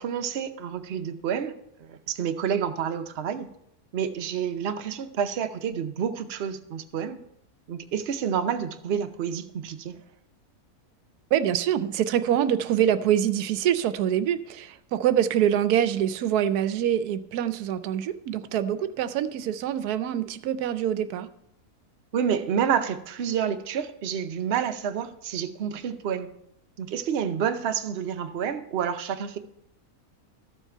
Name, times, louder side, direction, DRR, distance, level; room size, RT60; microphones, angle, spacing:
voice 1, 0.0-1.5 1.8-3.5 3.9-7.2 7.7-10.0 22.1-26.3 26.8-29.4, right 8 dB, 50° right, 7 dB, 0.9 m, -29 dB
voice 2, 11.3-21.3, right 10 dB, 85° right, 13 dB, 1.1 m, -25 dB
13.0 x 7.2 x 4.4 m, 0.74 s
omnidirectional pair, 1.6 m